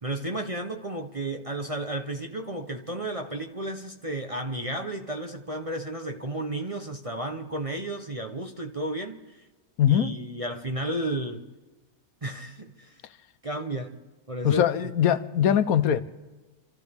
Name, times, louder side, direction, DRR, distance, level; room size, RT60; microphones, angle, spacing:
voice 1, 0.0-9.5 9.9-11.5 12.2-13.0 13.4-14.0 14.3-14.6, right 1 dB, 30° right, 0.7 m, -33 dB
voice 2, 9.8-10.1 14.4-16.0, left 10 dB, 75° left, 1.1 m, -21 dB
27.5 x 14.0 x 3.5 m
omnidirectional pair, 1.6 m